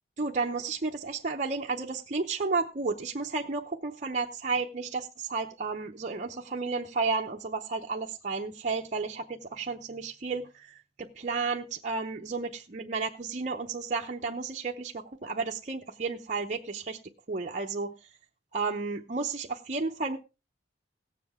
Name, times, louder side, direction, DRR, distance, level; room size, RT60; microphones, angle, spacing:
voice 1, 0.2-17.0 17.3-17.9 18.5-20.2, right 4 dB, 40° right, 1 dB, 0.7 m, -32 dB
17.0 x 7.6 x 3.5 m, 0.28 s
head